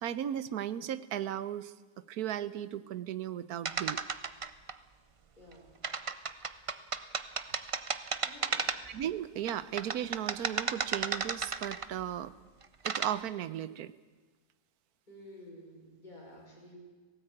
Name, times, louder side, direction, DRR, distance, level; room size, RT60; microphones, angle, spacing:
voice 1, 0.0-4.0 8.9-12.3 12.8-13.9, right 10 dB, 75° right, 15 dB, 1.3 m, -36 dB
sound 1, 3.6-4.7 5.8-9.0 9.5-12.0 12.6-13.1, right 5 dB, 55° right, 0.3 m, -34 dB
voice 2, 5.4-5.7 8.2-8.8 15.1-16.8, left 1 dB, 30° left, -4 dB, 6.2 m, -52 dB
17.5 x 17.0 x 9.0 m, 1.3 s
omnidirectional pair, 1.7 m